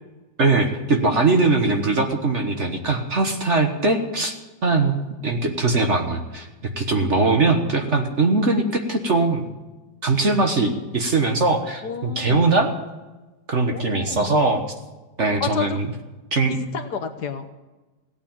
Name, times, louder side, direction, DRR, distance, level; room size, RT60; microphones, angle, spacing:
voice 1, 0.4-4.3 4.6-4.9 5.2-9.5 10.0-12.7 13.5-14.6 15.2-15.9 16.3-16.6, right 3 dB, 40° right, 4 dB, 1.4 m, -21 dB
voice 2, 11.8-12.6 13.7-14.4 15.4-15.8 16.5-17.5, left 7 dB, 65° left, 7 dB, 1.4 m, -31 dB
17.0 x 9.0 x 7.2 m, 1.2 s
omnidirectional pair, 2.1 m